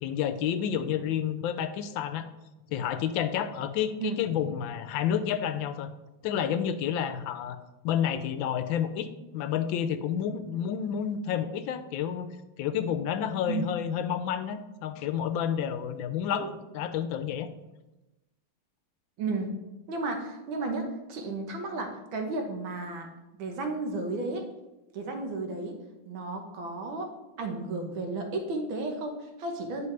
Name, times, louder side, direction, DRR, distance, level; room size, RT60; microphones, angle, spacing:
voice 1, 0.0-2.3 2.7-5.9 6.2-7.6 7.8-12.3 12.6-17.5, left 9 dB, 85° left, 10 dB, 1.3 m, -30 dB
voice 2, 19.2-19.6 19.9-23.1 23.4-24.5 24.9-25.8 26.0-27.1 27.4-29.9, right 3 dB, 90° right, 4 dB, 1.8 m, -33 dB
9.6 x 5.4 x 3.2 m, 1.0 s
omnidirectional pair, 2.1 m